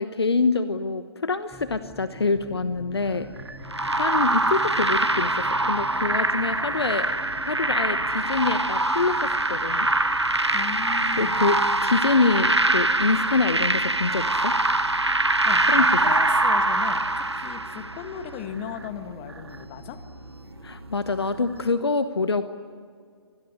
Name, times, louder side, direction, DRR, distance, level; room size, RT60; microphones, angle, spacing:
voice 1, 0.0-3.3 3.9-7.1 7.4-9.9 11.2-14.5 15.7-15.9 20.6-22.4, left 3 dB, 70° left, 11 dB, 1.1 m, -25 dB
sound 1, 1.5-21.3, left 3 dB, 10° left, 1.5 m, -47 dB
sound 2, 3.0-21.7, right 3 dB, 70° right, 1.9 m, -44 dB
sound 3, 3.7-18.1, right 2 dB, 85° right, 1.1 m, -23 dB
voice 2, 10.5-11.5 15.4-20.0, left 8 dB, 25° left, 9 dB, 1.8 m, -37 dB
26.0 x 20.0 x 9.8 m, 2.1 s
figure-of-eight pair, 130°, 14 cm